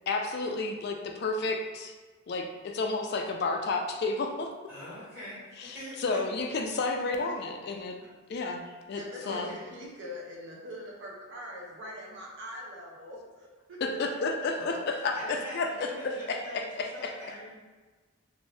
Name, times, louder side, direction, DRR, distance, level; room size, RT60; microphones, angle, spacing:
voice 1, 0.1-1.9 2.3-4.5 5.6-7.9 8.3-9.0 9.3-9.5 13.8-17.1, left 3 dB, 50° left, 3 dB, 0.3 m, -31 dB
voice 2, 4.7-6.2 9.2-9.7 14.5-14.8 15.1-17.5, left 1 dB, 10° right, -12 dB, 1.3 m, -43 dB
voice 3, 8.6-14.0, equal, 55° right, -2 dB, 0.6 m, -43 dB
2.6 x 2.6 x 3.2 m, 1.3 s
head